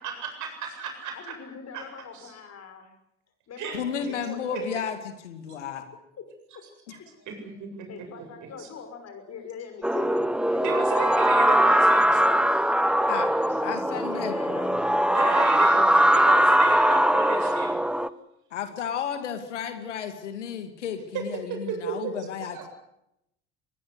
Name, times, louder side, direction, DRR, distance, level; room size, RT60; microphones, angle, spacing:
voice 1, 0.0-1.4 1.7-1.8 2.1-2.3 3.6-3.8 4.3-4.6 7.3-7.7 8.6-8.7 10.6-12.6 15.1-17.8 21.7-22.1 22.5-22.7, right 6 dB, 55° right, 4 dB, 7.8 m, -34 dB
voice 2, 1.1-2.9 3.5-4.9 6.2-6.3 6.5-6.6 7.0-7.6 7.9-10.7 13.5-13.6 14.1-14.8 15.2-16.2, left 6 dB, 45° left, 7 dB, 6.0 m, -43 dB
voice 3, 3.7-5.0 5.2-5.8 6.9-7.0 13.1-13.3 13.6-14.8 18.5-22.6, left 8 dB, 80° left, 8 dB, 2.4 m, -33 dB
sound 1, 9.8-18.1, equal, 5° right, 1.1 m, -21 dB
23.5 x 21.0 x 8.2 m, 0.82 s
hypercardioid pair, 60°, 35 cm